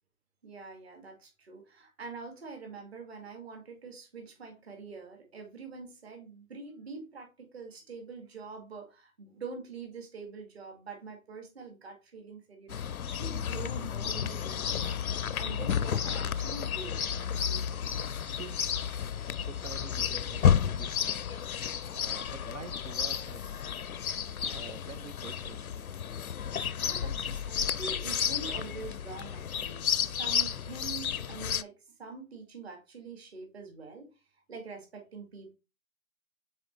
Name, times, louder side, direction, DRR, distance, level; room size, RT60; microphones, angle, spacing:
voice 1, 0.4-15.0 15.4-17.0 17.4-17.7 26.8-29.8 30.2-34.1 34.5-35.5, right 4 dB, 45° right, 2.2 m, -45 dB
Chirp tweet, 12.7-31.6, left 8 dB, 80° left, 0.6 m, -32 dB
voice 2, 18.3-18.6 19.3-21.2 21.9-23.7 24.4-25.9, right 6 dB, 65° right, 0.7 m, -47 dB
7.2 x 4.1 x 3.2 m
figure-of-eight pair, 155°, 42 cm